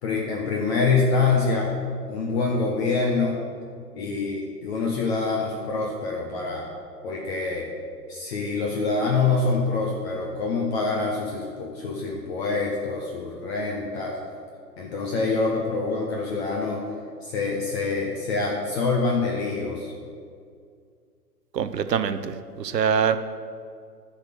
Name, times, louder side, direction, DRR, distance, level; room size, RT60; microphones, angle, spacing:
voice 1, 0.0-1.7 2.1-3.4 4.0-6.7 7.0-7.7 8.1-14.2 14.8-16.8 17.2-19.9, left 4 dB, 40° left, -2 dB, 1.4 m, -25 dB
voice 2, 21.5-23.2, right 7 dB, 80° right, 11 dB, 0.8 m, -24 dB
12.0 x 4.3 x 7.7 m, 2.2 s
figure-of-eight pair, 125°, 49 cm